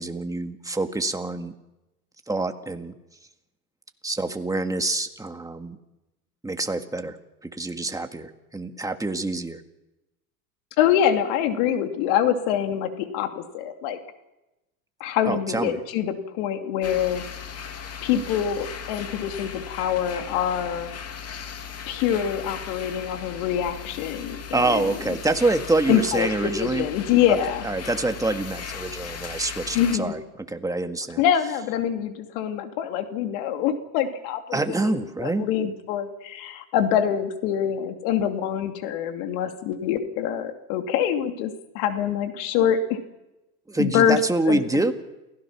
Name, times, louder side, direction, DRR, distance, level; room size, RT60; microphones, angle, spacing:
voice 1, 0.0-1.5 2.3-2.9 4.0-5.8 6.4-7.2 7.4-9.6 15.3-15.8 24.5-26.9 27.3-27.4 27.6-30.2 30.5-31.2 34.5-35.5 43.7-44.9, right 2 dB, 5° right, 6 dB, 1.8 m, -26 dB
voice 2, 10.8-14.0 15.0-17.2 18.0-20.9 21.9-25.0 25.9-27.7 29.7-30.1 31.2-34.6 34.9-43.0 43.8-44.2 44.5-44.6, left 9 dB, 65° left, 6 dB, 2.8 m, -25 dB
sound 1, 16.8-30.0, left 7 dB, 30° left, 2.5 m, -37 dB
29.0 x 16.0 x 6.0 m, 0.97 s
supercardioid pair, 100°, 46 cm